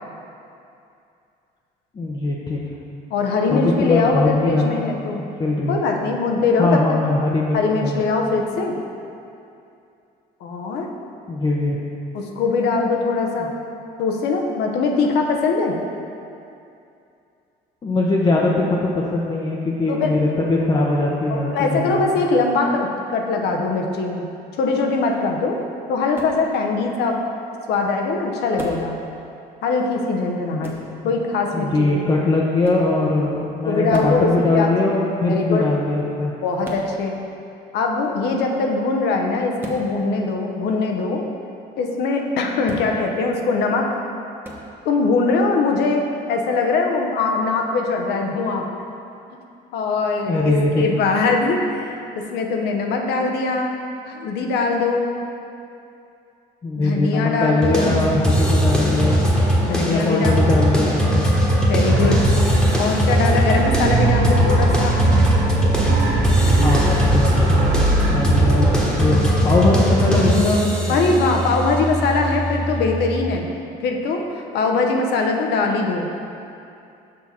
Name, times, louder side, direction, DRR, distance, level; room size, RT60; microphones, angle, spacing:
voice 1, 1.9-2.6 3.5-4.8 5.4-5.8 6.6-8.0 11.3-11.8 13.4-13.5 17.8-22.1 31.5-36.3 50.3-50.8 56.6-59.2 59.6-61.3 66.5-70.6 70.9-71.2, left 2 dB, 30° left, -4 dB, 0.7 m, -21 dB
voice 2, 3.1-5.2 5.7-7.0 7.5-8.8 10.4-10.9 12.1-13.5 14.0-15.8 19.9-20.2 21.3-24.3 24.6-25.6 25.9-27.2 27.7-28.9 29.6-30.7 31.0-31.9 33.7-34.9 35.2-35.7 36.4-37.2 37.7-41.2 41.8-43.9 44.8-46.0 46.3-48.7 49.3-49.4 49.7-53.7 54.1-55.1 56.8-58.0 59.6-60.6 61.7-62.2 62.8-65.0 70.9-73.4 73.8-76.1, left 3 dB, 75° left, 2 dB, 0.8 m, -21 dB
sound 1, 26.1-26.4 28.6-28.9 30.6-30.9 32.6-32.9 33.9-34.2 36.6-36.9 39.6-39.9 42.6-42.9 44.4-44.6, equal, 10° right, 1.0 m, -34 dB
sound 2, 57.6-73.3, equal, 5° left, 1.2 m, -20 dB
sound 3, 61.9-63.0 63.5-69.5, right 2 dB, 70° right, 0.9 m, -22 dB
6.4 x 5.8 x 4.2 m, 2.6 s
cardioid pair, 110°, 17 cm